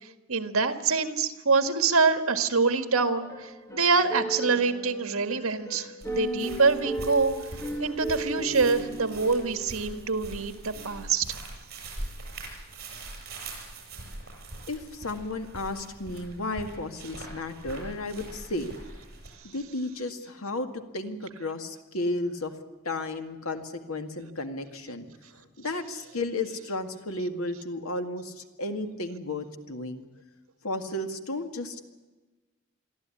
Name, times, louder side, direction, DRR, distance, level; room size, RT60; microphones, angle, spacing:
voice 1, 0.3-5.9 6.2-7.3 7.8-11.4, right 4 dB, 75° right, 8 dB, 1.8 m, -25 dB
sound 1, 3.2-10.2 10.8-11.1, right 1 dB, 15° left, 2.3 m, -36 dB
sound 2, 6.0-19.3, right 2 dB, 50° right, 7.5 m, -43 dB
voice 2, 14.7-18.7 19.4-22.5 22.9-25.1 25.6-30.0 30.6-31.8, left 2 dB, 85° left, 7 dB, 2.0 m, -33 dB
23.5 x 14.0 x 9.9 m, 1.2 s
head